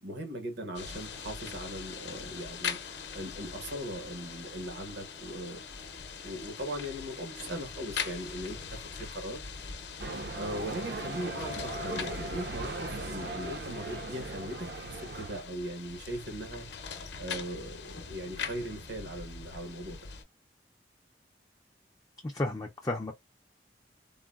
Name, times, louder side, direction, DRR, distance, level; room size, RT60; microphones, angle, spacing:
voice 1, 0.0-2.8 3.1-5.6 6.2-9.4 10.4-16.8 17.2-20.0, equal, 90° right, 1.1 m, -39 dB
sound 1, 0.7-20.2, left 6 dB, 70° left, 0.6 m, -42 dB
sound 2, 10.0-15.4, right 2 dB, 60° right, 0.5 m, -38 dB
voice 2, 22.2-23.1, left 2 dB, 20° left, 0.3 m, -32 dB
3.7 x 2.0 x 2.3 m
head